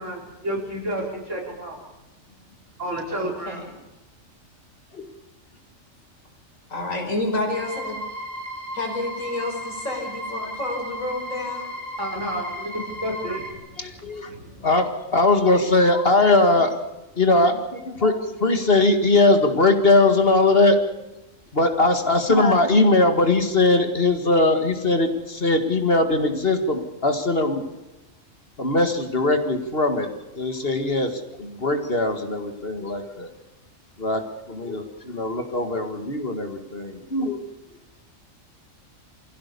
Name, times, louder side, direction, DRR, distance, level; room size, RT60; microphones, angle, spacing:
voice 1, 0.0-1.8 2.8-3.6 12.0-13.8 14.3-14.6, right 1 dB, 65° right, 0 dB, 4.9 m, -31 dB
voice 2, 3.1-3.7 6.7-8.0 8.7-11.7, left 2 dB, 80° left, 2 dB, 5.5 m, -29 dB
sound 1, 7.5-13.5, equal, 30° right, 4.3 m, -35 dB
voice 3, 13.8-14.3 14.6-16.7 17.2-20.8 21.5-27.7 28.6-30.1 30.3-33.3 34.0-34.2 34.5-37.4, left 2 dB, 45° left, 6 dB, 2.2 m, -20 dB
24.5 x 16.5 x 6.9 m, 1.0 s
omnidirectional pair, 1.4 m